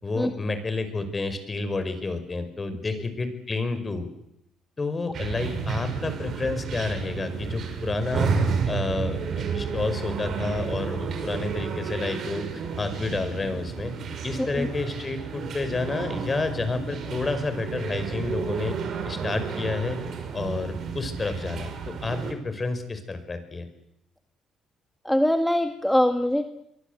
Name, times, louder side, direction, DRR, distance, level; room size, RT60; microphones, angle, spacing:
voice 1, 0.0-4.1 4.8-8.3 8.7-12.4 12.8-13.9 14.2-18.8 19.0-20.0 20.3-23.7, left 3 dB, 25° left, 10 dB, 5.7 m, -30 dB
sound 1, 5.1-22.3, right 5 dB, 55° right, 6.4 m, -31 dB
voice 2, 25.0-26.5, left 1 dB, 5° left, 7 dB, 1.7 m, -23 dB
28.0 x 23.5 x 8.3 m, 0.80 s
cardioid pair, 95°, 0 cm